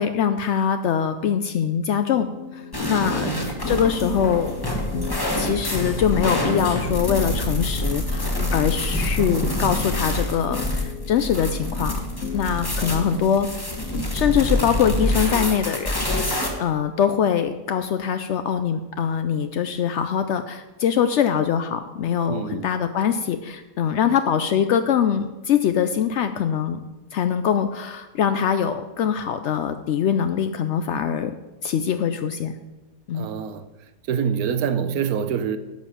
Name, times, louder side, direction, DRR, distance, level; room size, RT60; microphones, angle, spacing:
voice 1, 0.0-2.3 2.5-3.3 3.7-4.6 5.4-12.0 12.3-13.5 14.1-26.8 27.1-31.4 31.6-32.5 33.1-33.3, left 8 dB, 85° left, 0.6 m, -23 dB
sound 1, 2.1-14.0, left 4 dB, 55° left, 1.0 m, -36 dB
sound 2, 2.7-16.5, left 1 dB, 15° left, 1.1 m, -26 dB
voice 2, 3.0-3.5 12.8-13.3 22.3-22.7 33.1-33.7 34.1-35.6, right 7 dB, 70° right, 1.1 m, -26 dB
10.5 x 5.2 x 7.1 m
omnidirectional pair, 1.8 m